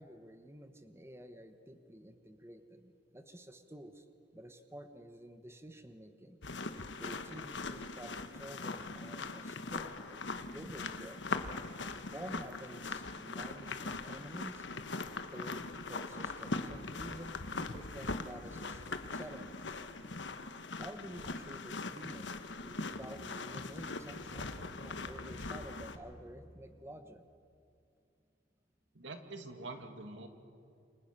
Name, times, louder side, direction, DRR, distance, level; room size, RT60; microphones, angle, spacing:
voice 1, 0.0-4.1 4.3-6.4 7.0-11.2 12.1-14.6 15.2-19.8 20.8-27.3, right 1 dB, 15° right, 8 dB, 1.3 m, -50 dB
sound 1, 6.4-26.0, left 3 dB, 70° left, 1.3 m, -41 dB
voice 2, 28.9-30.3, right 2 dB, 80° right, 6 dB, 2.4 m, -45 dB
29.0 x 27.0 x 6.8 m, 2.5 s
head